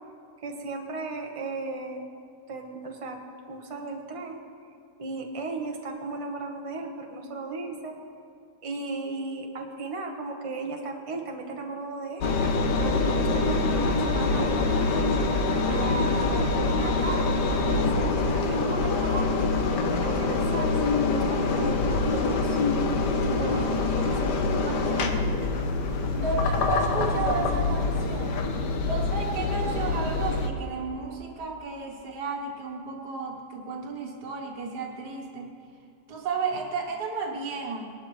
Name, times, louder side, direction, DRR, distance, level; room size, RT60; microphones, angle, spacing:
voice 1, 0.4-2.0 2.5-3.2 3.5-4.4 5.0-8.0 8.6-14.9 15.7-19.3 20.0-22.6 23.2-24.6, right 3 dB, 20° right, 2 dB, 1.0 m, -35 dB
Engine, 12.2-30.5, left 3 dB, 75° left, 1.5 m, -25 dB
voice 2, 24.7-25.3 26.1-28.4 28.9-35.5 36.1-37.9, right 4 dB, 70° right, 0 dB, 1.8 m, -33 dB
20.0 x 11.5 x 3.2 m, 2.5 s
omnidirectional pair, 1.8 m